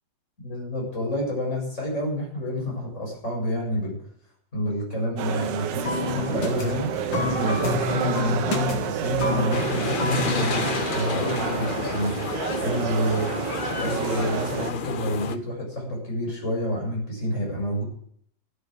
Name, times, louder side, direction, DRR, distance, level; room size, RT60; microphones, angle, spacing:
voice 1, 0.4-4.0 4.5-6.9 7.4-12.2 12.6-13.3 13.8-17.8, equal, 40° left, -2 dB, 7.7 m, -28 dB
sound 1, 5.2-14.7, right 10 dB, 75° right, 1.4 m, -29 dB
sound 2, 5.8-11.4, left 5 dB, 90° left, 2.5 m, -30 dB
sound 3, 9.5-15.4, left 6 dB, 65° left, 0.5 m, -30 dB
13.0 x 9.0 x 7.7 m, 0.65 s
omnidirectional pair, 2.0 m